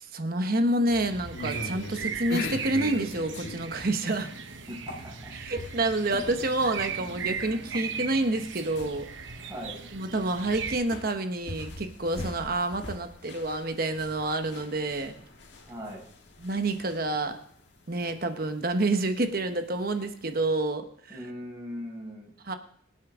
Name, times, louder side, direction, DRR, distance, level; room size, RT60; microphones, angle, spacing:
voice 1, 0.0-4.3 5.3-9.1 9.9-15.1 16.4-17.4 17.9-21.2 22.4-22.6, right 2 dB, 50° right, 7 dB, 1.1 m, -28 dB
sound 1, 0.9-10.8, right 6 dB, 75° right, 1.0 m, -38 dB
sound 2, 1.2-20.4, left 2 dB, 70° left, 1.6 m, -42 dB
voice 2, 4.7-5.3 9.4-9.8 15.7-16.0 21.1-22.3, equal, 15° right, -5 dB, 5.7 m, -39 dB
23.5 x 8.4 x 3.7 m, 0.63 s
head